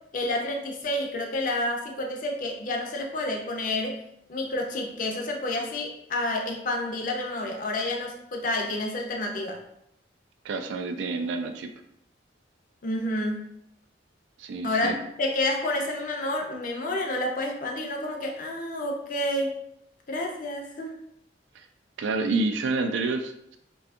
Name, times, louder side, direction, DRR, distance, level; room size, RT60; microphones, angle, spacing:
voice 1, 0.1-4.0 4.3-9.6 12.8-13.5 14.6-19.5 20.1-20.9, left 1 dB, 45° left, 2 dB, 0.4 m, -29 dB
voice 2, 10.4-11.7 14.4-15.0 21.5-21.7 22.0-23.6, right 3 dB, 80° right, 6 dB, 0.3 m, -28 dB
2.6 x 2.3 x 2.4 m, 0.76 s
head